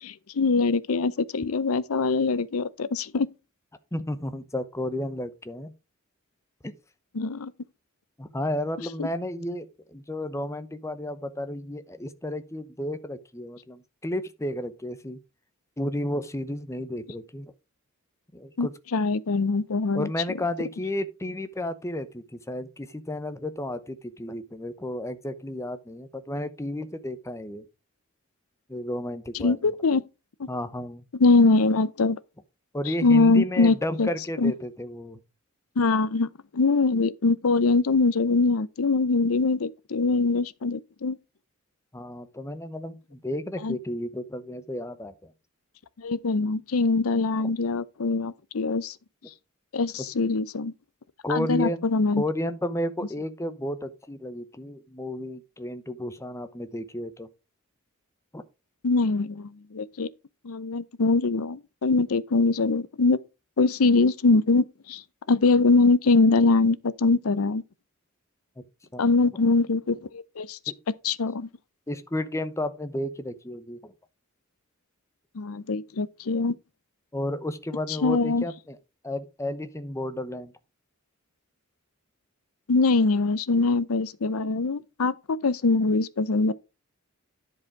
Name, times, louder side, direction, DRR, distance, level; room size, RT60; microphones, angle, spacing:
voice 1, 0.0-3.3 7.1-7.5 9.0-9.1 18.6-20.1 29.4-30.0 30.4-30.5 31.2-32.2 33.0-34.1 34.4-34.5 35.8-41.2 43.6-43.8 46.0-48.9 49.7-50.7 51.3-52.2 58.8-60.1 60.4-63.2 63.6-65.0 65.3-67.6 69.0-70.6 71.0-71.5 75.3-76.6 78.0-78.4 82.7-86.5, left 3 dB, 80° left, 0.6 m, -23 dB
voice 2, 3.9-5.7 6.6-6.7 8.2-15.2 15.8-17.5 18.3-18.7 19.9-27.7 28.7-29.6 30.5-31.1 32.7-35.2 41.9-45.3 47.4-47.5 51.2-51.9 52.2-57.3 58.3-58.4 68.6-68.7 68.9-69.3 70.7-70.8 71.9-73.9 77.1-78.8 79.0-80.5, left 1 dB, 15° left, 0.8 m, -32 dB
10.5 x 4.8 x 4.7 m
head